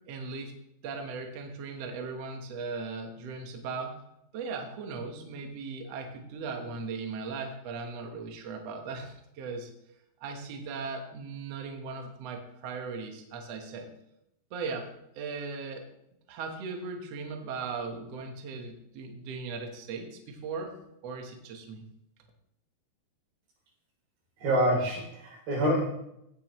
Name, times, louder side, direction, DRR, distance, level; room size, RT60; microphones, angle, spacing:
voice 1, 0.1-0.5 0.8-4.0 4.3-9.7 10.2-13.9 14.5-15.9 16.3-20.7 21.0-21.8, right 4 dB, 60° right, 3 dB, 1.8 m, -38 dB
voice 2, 24.4-25.9, equal, 80° right, -2 dB, 5.3 m, -26 dB
17.5 x 7.6 x 3.1 m, 0.81 s
omnidirectional pair, 4.3 m